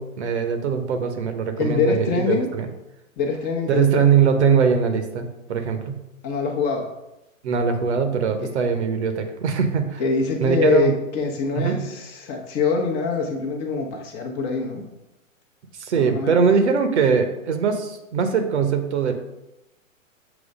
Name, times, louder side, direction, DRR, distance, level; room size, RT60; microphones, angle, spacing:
voice 1, 0.0-2.7 3.7-6.0 7.4-10.0 10.4-10.9 11.6-11.9 15.8-19.1, right 6 dB, 55° right, 7 dB, 1.0 m, -21 dB
voice 2, 1.6-2.5 3.2-4.1 6.2-6.9 8.4-8.5 10.0-14.8 16.0-16.4, left 4 dB, 25° left, 2 dB, 0.9 m, -24 dB
7.0 x 3.2 x 5.2 m, 0.94 s
figure-of-eight pair, 120°, 41 cm